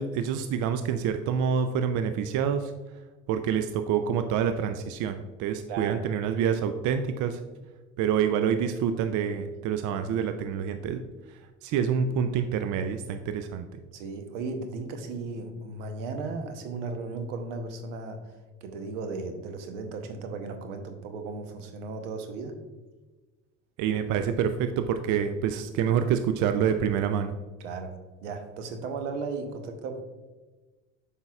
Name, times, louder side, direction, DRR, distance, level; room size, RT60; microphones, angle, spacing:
voice 1, 0.0-2.7 3.3-7.4 8.0-11.0 11.6-13.8 23.8-27.3, right 7 dB, 55° right, 8 dB, 0.5 m, -27 dB
voice 2, 5.7-6.0 13.9-18.3 18.6-22.6 27.6-30.0, right 3 dB, 80° right, 6 dB, 1.0 m, -36 dB
7.7 x 5.6 x 2.4 m, 1.2 s
hypercardioid pair, 75°, 36 cm